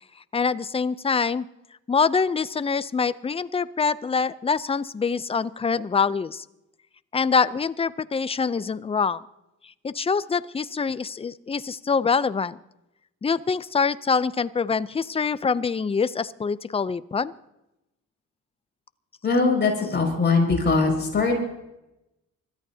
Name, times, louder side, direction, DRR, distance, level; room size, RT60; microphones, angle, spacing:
voice 1, 0.3-1.5 1.9-6.4 7.1-9.2 9.8-12.6 13.2-17.3 19.8-20.0, left 5 dB, 20° left, 16 dB, 0.5 m, -25 dB
voice 2, 19.2-21.3, left 4 dB, 35° left, 0 dB, 5.8 m, -21 dB
25.5 x 13.5 x 2.8 m, 0.91 s
cardioid pair, 90°, 30 cm